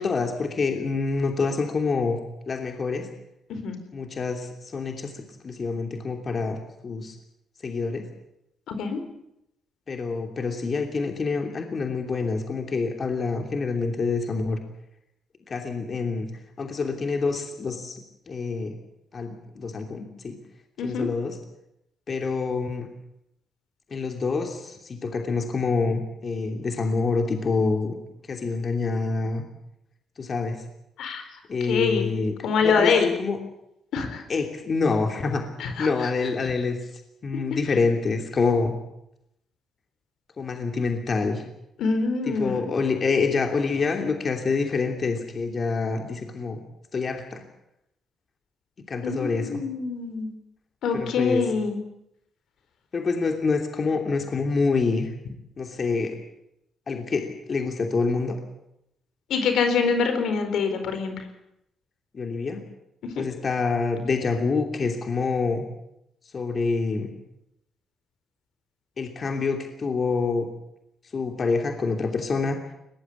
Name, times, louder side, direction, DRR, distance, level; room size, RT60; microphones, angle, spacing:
voice 1, 0.0-2.2 2.5-3.1 3.9-6.6 6.8-7.2 7.6-8.0 9.9-14.6 15.5-16.3 16.6-18.8 19.1-20.4 20.8-21.4 22.1-22.9 23.9-28.0 28.3-29.4 30.2-30.6 31.5-32.3 32.6-33.4 34.3-35.4 35.8-36.8 37.2-38.7 40.4-41.4 42.3-46.6 46.9-47.4 48.9-49.6 50.9-51.4 52.9-55.1 55.6-56.2 56.9-58.4 62.1-62.6 63.2-65.6 66.3-67.1 69.0-70.5 71.1-72.6, left 4 dB, 40° left, 4 dB, 3.0 m, -26 dB
voice 2, 8.7-9.0 20.8-21.1 31.0-31.2 31.7-32.1 32.4-33.1 33.9-34.2 35.6-36.1 41.8-42.7 49.0-50.3 50.8-51.8 59.3-61.3 63.2-63.3, left 5 dB, 75° left, 7 dB, 4.2 m, -25 dB
22.0 x 19.0 x 8.6 m, 0.83 s
cardioid pair, 90°, 0 cm